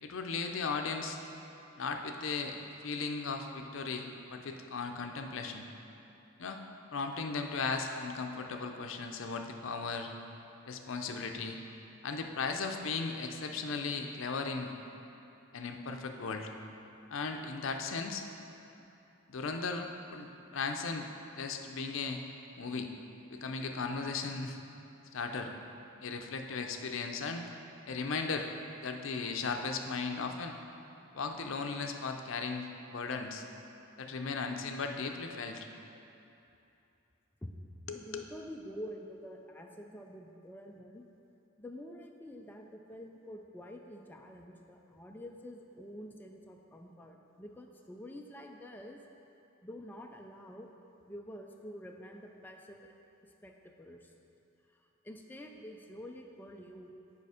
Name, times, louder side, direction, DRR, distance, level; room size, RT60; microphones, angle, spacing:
voice 1, 0.0-1.2 1.8-2.6 2.8-5.7 6.4-6.6 6.9-10.1 10.7-11.6 12.0-14.7 15.5-16.5 17.1-18.2 19.3-21.1 21.4-22.2 22.6-22.9 23.3-24.6 25.1-25.5 26.0-27.5 27.9-28.5 28.8-30.6 31.1-33.4 34.0-35.7 37.9-38.2, left 4 dB, 70° left, 5 dB, 0.5 m, -36 dB
voice 2, 37.9-41.1 41.6-49.0 49.6-50.7 51.1-52.9 53.2-54.1 54.7-56.9, equal, 10° left, 2 dB, 0.3 m, -48 dB
6.8 x 5.0 x 4.9 m, 2.7 s
head